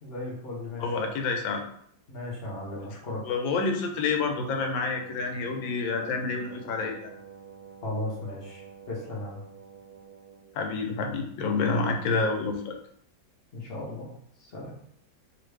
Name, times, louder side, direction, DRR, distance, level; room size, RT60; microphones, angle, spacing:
voice 1, 0.0-0.8 2.1-3.2 7.8-9.4 11.7-11.8 13.5-14.1 14.4-14.8, left 2 dB, 50° left, -4 dB, 0.8 m, -36 dB
voice 2, 0.8-1.6 3.3-7.1 10.5-12.8, left 4 dB, 90° left, 3 dB, 1.4 m, -28 dB
Wind instrument woodwind instrument, 4.0-10.6, right 7 dB, 85° right, 1.3 m, -48 dB
3.1 x 2.4 x 3.2 m, 0.66 s
omnidirectional pair, 2.0 m